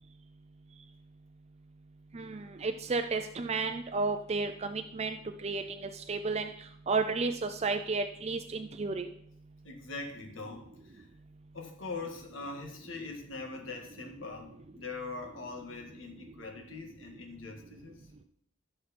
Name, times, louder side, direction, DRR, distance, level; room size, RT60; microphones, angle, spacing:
voice 1, 2.1-9.1, right 4 dB, 35° right, 7 dB, 0.5 m, -33 dB
voice 2, 9.6-11.1 11.5-14.5 14.8-17.9, left 3 dB, 80° left, 3 dB, 1.8 m, -42 dB
15.0 x 6.8 x 4.3 m, 0.73 s
head